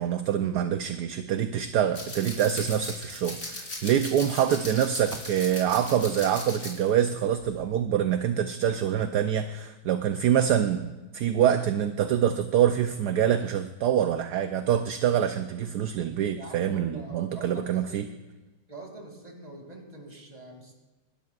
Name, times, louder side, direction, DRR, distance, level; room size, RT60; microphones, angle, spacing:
voice 1, 0.0-18.0, right 9 dB, 70° right, 8 dB, 1.1 m, -25 dB
sound 1, 1.9-7.1 7.4-7.6, left 2 dB, 40° left, 3.5 m, -39 dB
voice 2, 16.4-18.1 18.7-20.7, right 2 dB, 20° right, 1 dB, 2.5 m, -44 dB
27.5 x 12.5 x 2.4 m, 1.1 s
omnidirectional pair, 1.9 m